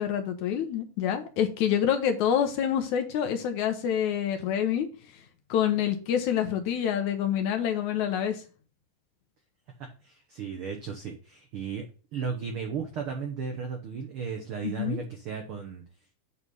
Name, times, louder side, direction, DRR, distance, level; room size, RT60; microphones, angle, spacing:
voice 1, 0.0-4.9 5.5-8.4 14.6-15.0, left 9 dB, 70° left, 6 dB, 2.1 m, -27 dB
voice 2, 9.8-11.8 12.1-15.8, right 6 dB, 75° right, 4 dB, 1.2 m, -35 dB
7.9 x 4.3 x 5.3 m, 0.36 s
omnidirectional pair, 3.8 m